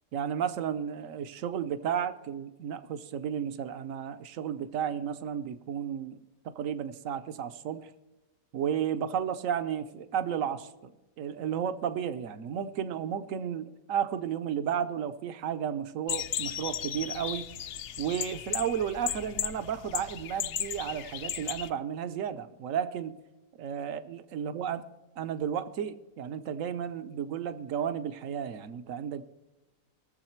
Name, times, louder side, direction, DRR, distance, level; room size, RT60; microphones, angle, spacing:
voice 1, 0.1-6.2 6.4-7.9 8.5-10.9 11.2-17.5 18.0-23.2 23.6-24.8 25.2-29.2, right 8 dB, 75° right, 11 dB, 1.2 m, -33 dB
sound 1, 16.1-21.7, left 10 dB, 65° left, 0.9 m, -35 dB
20.5 x 7.2 x 4.4 m, 1.0 s
omnidirectional pair, 1.4 m